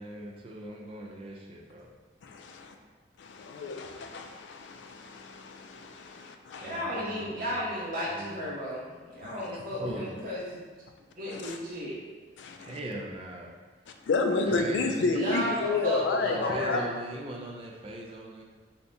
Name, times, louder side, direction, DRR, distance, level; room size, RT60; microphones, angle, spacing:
voice 1, 0.0-1.9 6.6-8.4 9.8-10.1 12.6-13.5 14.3-18.4, right 1 dB, 30° right, -1 dB, 0.4 m, -40 dB
voice 2, 2.2-2.7 3.2-6.7 9.2-9.3 11.3-11.6 12.4-12.8 14.1-16.8, left 3 dB, 70° left, 5 dB, 0.3 m, -31 dB
voice 3, 6.5-10.7 11.2-12.0 15.1-16.8, equal, 45° right, -7 dB, 0.9 m, -34 dB
3.3 x 2.7 x 2.6 m, 1.4 s
head